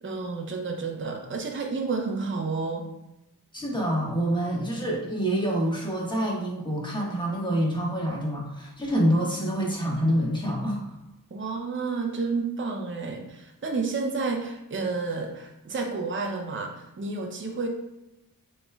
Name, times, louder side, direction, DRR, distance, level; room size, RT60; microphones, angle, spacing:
voice 1, 0.0-2.9 11.3-17.7, right 4 dB, 35° right, 2 dB, 0.6 m, -30 dB
voice 2, 3.5-10.8, equal, 15° left, -3 dB, 1.4 m, -26 dB
6.8 x 3.2 x 2.3 m, 0.92 s
wide cardioid pair, 50°, 35 cm